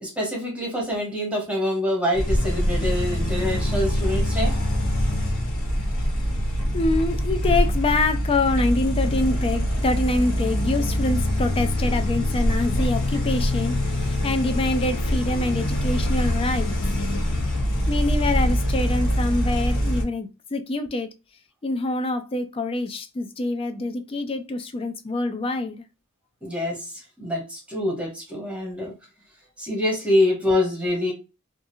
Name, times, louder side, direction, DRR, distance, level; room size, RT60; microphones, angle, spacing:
voice 1, 0.0-4.5 26.4-28.9 29.6-31.1, left 1 dB, 5° right, 0.9 m, -25 dB
sound 1, 2.1-20.0, equal, 60° left, 0.9 m, -24 dB
voice 2, 6.7-16.7 17.9-21.1 21.6-25.9, left 2 dB, 25° left, 0.3 m, -25 dB
2.8 x 2.4 x 2.6 m
head